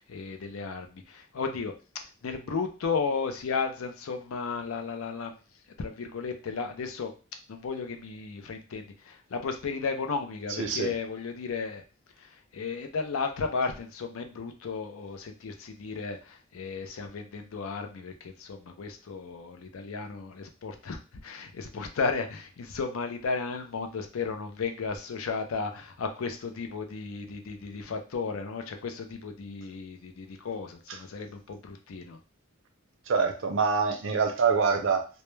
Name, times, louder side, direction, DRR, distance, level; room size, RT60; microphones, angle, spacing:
voice 1, 0.0-1.7 2.2-5.4 5.8-7.1 7.5-11.8 12.2-32.2, left 4 dB, 80° left, 5 dB, 0.4 m, -34 dB
voice 2, 10.6-10.9 33.1-35.1, right 5 dB, 65° right, 4 dB, 0.5 m, -25 dB
2.2 x 2.1 x 3.0 m, 0.34 s
head